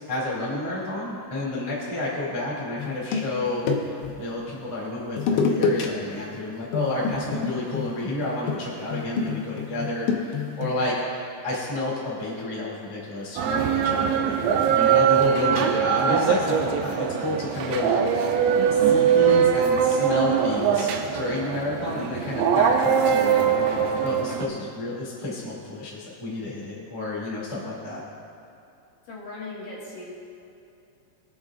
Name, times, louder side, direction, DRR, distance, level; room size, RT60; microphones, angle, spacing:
voice 1, 0.1-18.2 18.7-28.0, left 2 dB, 15° left, -6 dB, 1.0 m, -30 dB
sound 1, 2.8-4.2 5.2-5.9 6.2-6.4 6.7-10.8, left 5 dB, 80° left, 3.1 m, -27 dB
sound 2, 13.4-24.5, right 8 dB, 85° right, 2.8 m, -22 dB
voice 2, 29.1-30.1, left 2 dB, 60° left, -6 dB, 2.7 m, -38 dB
23.0 x 7.7 x 2.5 m, 2.7 s
omnidirectional pair, 5.1 m